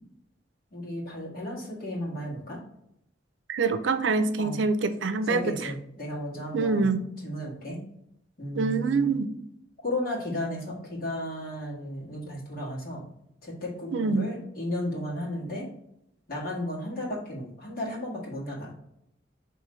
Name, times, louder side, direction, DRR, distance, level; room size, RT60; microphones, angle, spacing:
voice 1, 0.7-2.6 4.4-4.6 5.2-6.9 7.2-7.8 8.4-9.1 9.8-13.1 13.4-15.7 16.3-18.7, left 1 dB, 55° left, -4 dB, 1.7 m, -34 dB
voice 2, 3.5-5.7 6.5-7.1 8.5-9.3 13.9-14.3, right 4 dB, 85° right, 10 dB, 0.5 m, -25 dB
4.8 x 3.1 x 3.1 m, 0.77 s
head